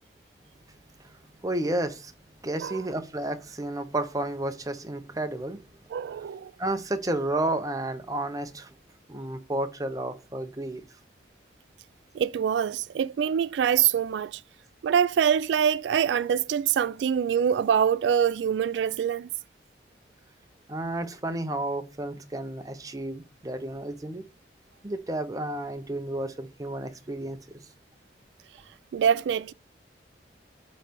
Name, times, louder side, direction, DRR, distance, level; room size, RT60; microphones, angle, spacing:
voice 1, 1.4-2.1 2.4-5.6 6.6-8.7 9.1-10.8 20.7-24.2 24.8-27.4, right 1 dB, 20° right, 0.7 m, -31 dB
voice 2, 5.9-6.5 12.1-14.4 14.8-19.3 28.9-29.5, right 8 dB, 85° right, 0.3 m, -24 dB
8.7 x 3.2 x 5.2 m
head